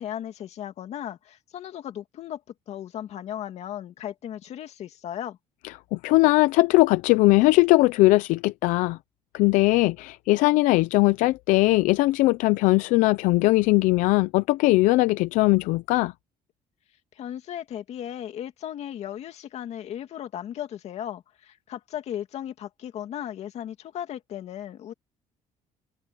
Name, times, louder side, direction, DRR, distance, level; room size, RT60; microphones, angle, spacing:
voice 1, 0.0-2.4 2.7-5.4 17.2-24.9, left 10 dB, 55° left, 2.4 m, -36 dB
voice 2, 5.6-9.0 9.3-16.1, left 20 dB, 90° left, 0.5 m, -20 dB
cardioid pair, 130°, 13 cm